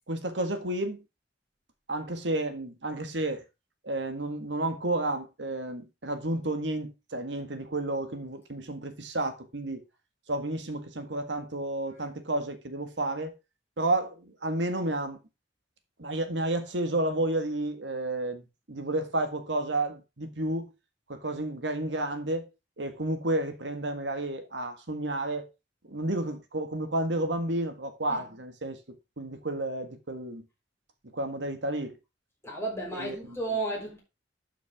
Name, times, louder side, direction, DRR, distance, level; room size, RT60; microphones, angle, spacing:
voice 1, 0.1-1.0 1.9-3.4 3.8-9.8 10.3-13.4 13.8-15.2 16.0-20.7 21.1-22.5 22.8-25.5 25.9-28.8 29.2-30.4 31.1-32.0 32.9-33.4, right 1 dB, 80° right, 1.8 m, -31 dB
voice 2, 32.4-34.0, right 2 dB, 15° left, 5.6 m, -33 dB
12.0 x 6.1 x 3.6 m
head